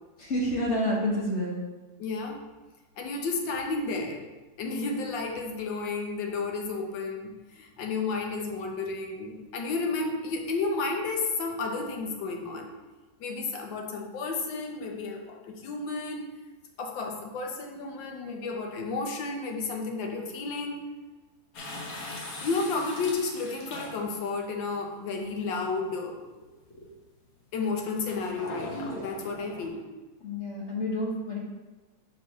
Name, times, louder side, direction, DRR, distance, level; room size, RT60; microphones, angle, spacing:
voice 1, 0.2-1.6 26.7-26.9 30.2-31.4, left 1 dB, 45° left, -3 dB, 1.2 m, -29 dB
voice 2, 2.0-2.4 3.0-4.2 4.6-12.7 13.2-16.3 16.8-20.9 22.4-26.2 27.5-29.8, left 3 dB, 85° left, 2 dB, 1.6 m, -32 dB
sound 1, 21.5-24.3 25.2-25.3 28.1-29.7, left 1 dB, 60° left, 1.6 m, -39 dB
5.3 x 4.0 x 5.4 m, 1.2 s
omnidirectional pair, 2.0 m